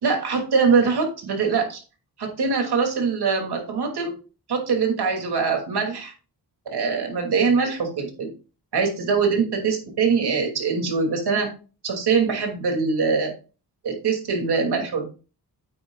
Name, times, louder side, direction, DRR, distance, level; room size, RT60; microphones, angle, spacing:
voice 1, 0.0-1.8 2.2-4.1 4.5-6.1 6.7-8.3 8.7-11.5 11.8-13.3 13.8-15.1, right 5 dB, 75° right, 3 dB, 2.7 m, -23 dB
9.2 x 8.8 x 2.4 m, 0.34 s
wide cardioid pair, 165°, 39 cm